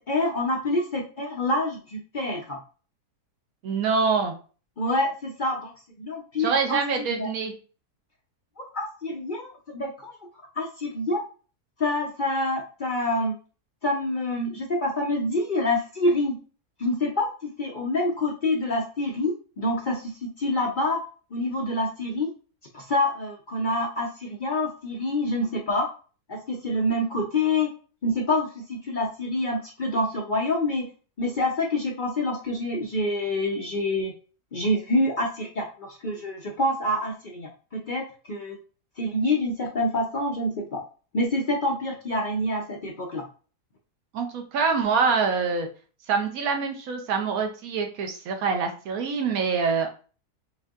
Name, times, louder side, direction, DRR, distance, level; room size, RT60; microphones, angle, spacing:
voice 1, 0.0-2.6 4.8-5.7 6.0-6.8 7.2-7.3 8.6-10.1 10.6-11.2 11.8-13.3 13.8-16.4 16.8-21.0 21.3-22.3 22.7-25.9 26.3-27.7 28.0-30.9 31.2-34.1 34.5-38.6 39.0-40.8 41.1-43.2, left 1 dB, 55° left, -1 dB, 0.5 m, -27 dB
voice 2, 3.6-4.3 6.4-7.5 44.1-45.7 46.1-49.9, right 5 dB, 70° right, 4 dB, 1.2 m, -25 dB
5.3 x 2.7 x 2.4 m, 0.37 s
omnidirectional pair, 1.6 m